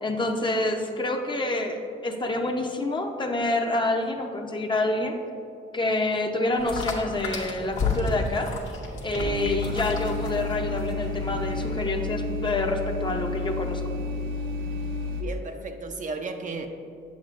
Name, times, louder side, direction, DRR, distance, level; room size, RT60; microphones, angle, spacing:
voice 1, 0.0-5.2 5.7-8.5 9.0-13.8, left 2 dB, 25° left, 3 dB, 0.7 m, -27 dB
sound 1, 6.6-11.8, left 4 dB, 85° left, 1.2 m, -33 dB
sound 2, 9.2-15.2, left 2 dB, 80° right, 1.3 m, -31 dB
voice 2, 15.2-16.7, right 3 dB, 40° right, 5 dB, 0.5 m, -34 dB
8.1 x 7.2 x 2.5 m, 2.6 s
cardioid pair, 90°, 20 cm